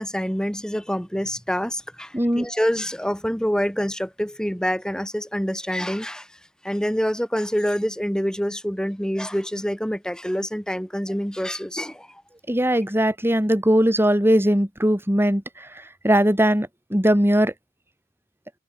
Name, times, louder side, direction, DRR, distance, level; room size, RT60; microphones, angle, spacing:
voice 1, 0.0-6.3 6.6-12.2, equal, 5° left, 5.2 m, -26 dB
voice 2, 2.1-2.5 12.5-15.7 16.0-17.5, equal, 10° right, 4.6 m, -20 dB
head